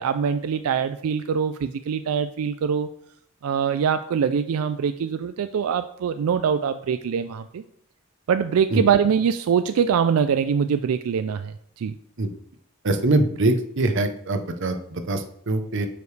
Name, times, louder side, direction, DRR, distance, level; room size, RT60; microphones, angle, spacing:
voice 1, 0.0-2.9 3.4-7.6 8.3-11.9, right 7 dB, 90° right, 10 dB, 0.3 m, -23 dB
voice 2, 12.8-15.9, right 2 dB, 60° right, 7 dB, 0.8 m, -23 dB
9.3 x 5.1 x 3.3 m, 0.69 s
head